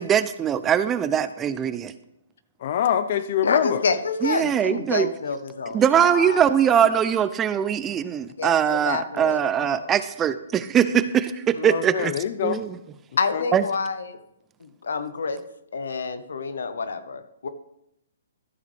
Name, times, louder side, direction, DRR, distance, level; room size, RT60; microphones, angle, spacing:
voice 1, 0.0-1.9 4.2-5.1 5.7-12.1 12.4-12.7 13.5-13.6, right 9 dB, 15° right, 13 dB, 0.4 m, -21 dB
voice 2, 2.6-3.8 11.6-12.6 13.3-13.4, left 9 dB, 50° left, 12 dB, 0.5 m, -25 dB
voice 3, 3.4-6.8 8.4-9.9 13.2-14.2 14.6-15.4 15.7-17.5, left 5 dB, 75° left, 11 dB, 1.0 m, -28 dB
13.5 x 6.5 x 3.4 m, 0.81 s
hypercardioid pair, 145°, 0 cm